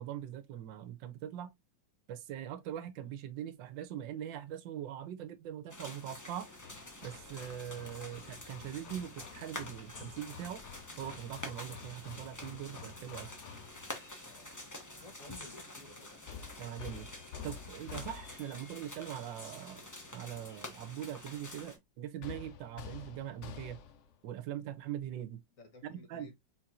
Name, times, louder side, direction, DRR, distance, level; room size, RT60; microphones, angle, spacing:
voice 1, 0.0-1.5 2.1-6.5 7.0-10.6 11.0-13.3 16.6-17.1 17.4-23.8 24.2-25.4 25.8-26.3, right 10 dB, 80° right, 1.4 m, -42 dB
sound 1, 5.7-21.8, left 1 dB, 25° left, 0.3 m, -48 dB
Hammer, 6.6-14.0 16.3-18.7 22.2-24.1, left 7 dB, 85° left, 0.6 m, -50 dB
voice 2, 14.3-14.6 15.0-16.2 25.6-26.4, left 4 dB, 50° left, 1.5 m, -54 dB
4.4 x 4.1 x 2.3 m
omnidirectional pair, 2.0 m